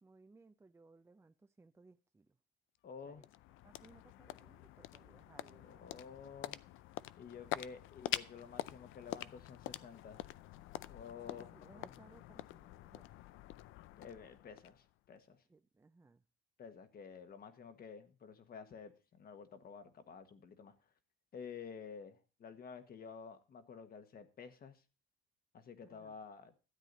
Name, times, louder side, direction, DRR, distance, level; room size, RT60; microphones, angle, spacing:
voice 1, 0.0-2.4 3.0-3.3 3.6-6.0 7.6-7.7 11.3-13.1 15.5-16.2 25.9-26.2, right 3 dB, 15° right, 0.5 m, -63 dB
sound 1, 2.7-15.2, left 15 dB, 75° left, 0.5 m, -46 dB
voice 2, 2.8-3.2 5.5-6.6 7.2-10.2 10.9-11.5 11.8-11.9 14.0-15.4 16.6-20.7 21.3-24.8 25.5-26.5, left 6 dB, 45° left, 1.4 m, -51 dB
13.0 x 8.4 x 4.0 m
cardioid pair, 110°, 21 cm